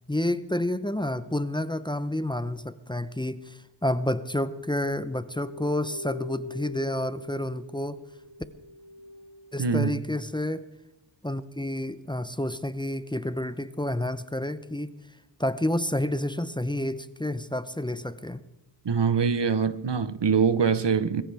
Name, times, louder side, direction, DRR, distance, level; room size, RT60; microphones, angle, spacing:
voice 1, 0.1-8.0 9.5-10.7 11.2-14.9 15.4-18.4, left 1 dB, 10° left, 0.7 m, -29 dB
sound 1, 5.3-10.0, left 2 dB, 55° right, 1.5 m, -44 dB
voice 2, 9.6-10.0 18.8-21.2, right 6 dB, 70° right, 0.9 m, -24 dB
22.0 x 15.0 x 3.4 m
wide cardioid pair, 65°, 44 cm